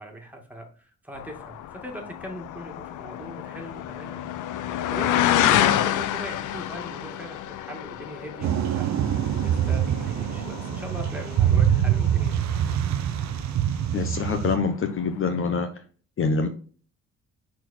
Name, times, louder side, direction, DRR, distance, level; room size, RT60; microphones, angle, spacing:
voice 1, 0.0-4.3 4.9-8.9 9.4-12.4, equal, 5° right, 1 dB, 2.2 m, -40 dB
sound 1, 1.2-13.6 13.9-14.5 15.0-15.1, left 11 dB, 80° left, 0.6 m, -29 dB
sound 2, 8.4-14.6, right 10 dB, 65° right, 0.6 m, -24 dB
voice 2, 13.9-15.7 16.2-16.5, left 5 dB, 45° left, 7 dB, 0.9 m, -25 dB
6.2 x 4.2 x 4.3 m, 0.41 s
cardioid pair, 90°, 30 cm